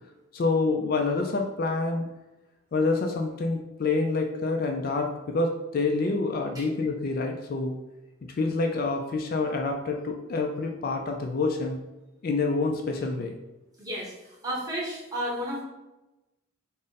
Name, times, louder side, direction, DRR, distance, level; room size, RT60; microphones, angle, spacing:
voice 1, 0.3-2.1 2.7-7.7 8.4-11.8 12.2-13.4, left 3 dB, 45° left, 3 dB, 0.3 m, -27 dB
voice 2, 13.8-14.1 14.4-15.6, equal, 20° right, -5 dB, 0.9 m, -32 dB
3.7 x 2.0 x 4.0 m, 0.99 s
head